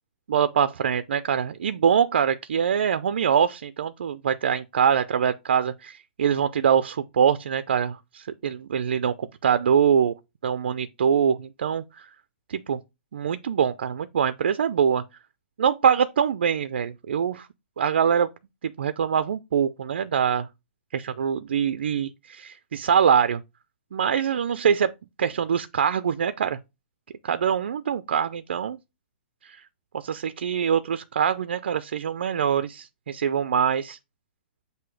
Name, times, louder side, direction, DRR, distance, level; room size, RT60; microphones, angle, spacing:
voice 1, 0.3-10.1 10.4-12.1 12.5-12.8 13.1-15.0 15.6-17.5 17.8-18.3 18.6-20.5 20.9-23.4 23.9-24.9 25.2-26.6 27.2-28.8 29.4-29.6 29.9-34.0, right 7 dB, 70° right, 0.4 m, -24 dB
7.8 x 2.7 x 4.8 m
hypercardioid pair, 175°, 6 cm